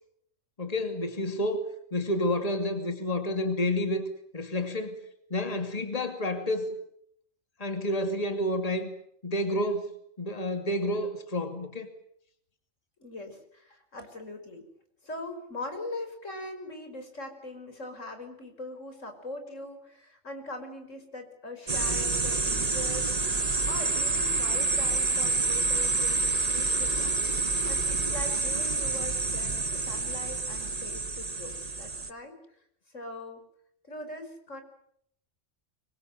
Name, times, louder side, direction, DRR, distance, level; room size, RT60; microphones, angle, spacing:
voice 1, 0.6-1.6 1.9-4.0 4.3-5.0 5.3-6.7 7.6-8.9 9.2-9.9 10.2-11.9 23.5-23.6, left 1 dB, 30° left, 7 dB, 2.6 m, -29 dB
voice 2, 13.0-14.7 15.0-27.2 27.6-32.4 32.9-33.4 33.8-34.6, left 2 dB, 85° left, 6 dB, 5.8 m, -41 dB
sound 1, 21.7-32.1, right 3 dB, 30° right, 1.4 m, -28 dB
26.0 x 23.5 x 7.8 m, 0.70 s
omnidirectional pair, 1.3 m